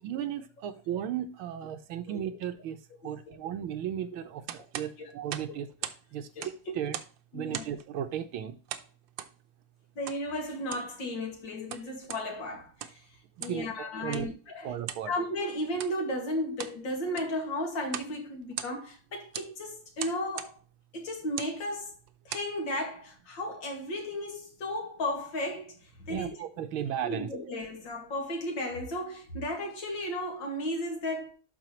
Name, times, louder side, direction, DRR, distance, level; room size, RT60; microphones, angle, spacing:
voice 1, 0.0-2.8 3.0-5.7 6.1-6.3 6.7-7.0 7.3-8.6 13.5-14.3 14.6-15.1 26.1-27.3, right 10 dB, 90° right, 1.7 m, -35 dB
sound 1, 4.5-6.0 6.3-7.2 7.5-7.9 8.7-9.3 10.1-10.2 10.6-10.9 11.5-12.2 12.7-13.0 13.4-13.6 14.1-14.3 14.8-15.1 15.7-16.0 16.4-16.8 17.1-17.4 17.9-18.1 18.4-19.0 19.3-19.5 20.0-20.5 21.2-21.6 22.1-22.5, right 10 dB, 70° right, 1.4 m, -39 dB
voice 2, 6.4-6.7 7.3-7.6 10.0-13.1 13.4-14.7 15.1-20.5 20.9-21.9 22.3-26.4 27.0-31.3, left 1 dB, 65° left, 2.8 m, -34 dB
12.0 x 4.3 x 3.0 m
omnidirectional pair, 2.2 m